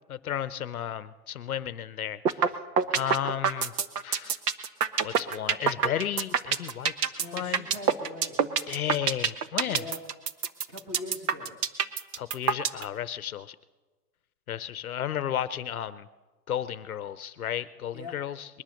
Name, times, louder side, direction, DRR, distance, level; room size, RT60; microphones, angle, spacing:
voice 1, 0.1-2.5 2.9-3.7 4.0-4.4 5.0-7.7 8.7-9.8 12.2-13.6 14.5-16.1 16.5-18.6, left 10 dB, 60° left, 14 dB, 0.7 m, -33 dB
sound 1, 2.3-2.5 2.8-12.8, right 7 dB, 70° right, 1.2 m, -25 dB
voice 2, 7.2-8.4 9.7-10.0 10.7-11.6 17.9-18.1, left 2 dB, 15° right, 2 dB, 1.6 m, -41 dB
21.5 x 10.5 x 6.4 m, 1.2 s
hypercardioid pair, 175°, 49 cm